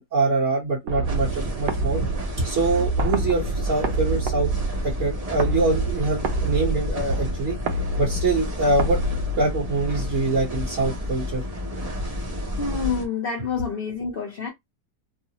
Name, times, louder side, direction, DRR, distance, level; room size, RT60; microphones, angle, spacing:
voice 1, 0.0-2.0 2.4-4.5 4.8-7.6 8.0-9.0 9.4-11.4, right 3 dB, 55° right, 1.3 m, -24 dB
sound 1, 0.9-9.9, right 3 dB, 80° right, 1.2 m, -28 dB
sound 2, 1.0-13.1, left 1 dB, 30° right, 0.7 m, -30 dB
voice 2, 12.6-14.5, left 5 dB, 60° left, 0.6 m, -28 dB
3.1 x 2.0 x 2.8 m
omnidirectional pair, 1.7 m